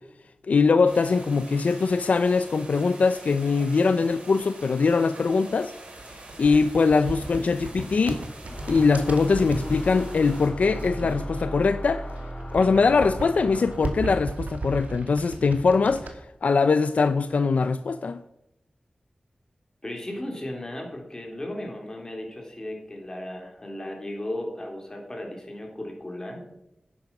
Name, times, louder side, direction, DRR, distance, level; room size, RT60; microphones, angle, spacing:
voice 1, 0.5-5.7 6.4-8.2 8.7-12.0 12.5-16.1 16.4-18.2, left 4 dB, 75° left, 0.5 m, -22 dB
sound 1, 0.8-10.5, right 2 dB, 65° right, 4.6 m, -45 dB
sound 2, 5.8-9.7 10.4-11.7 12.0-16.1, right 3 dB, 85° right, 1.9 m, -36 dB
sound 3, 8.4-14.1, equal, 55° left, 3.2 m, -36 dB
voice 2, 19.8-26.4, left 1 dB, 25° left, 3.7 m, -35 dB
10.5 x 9.7 x 6.0 m
wide cardioid pair, 95°, 2 cm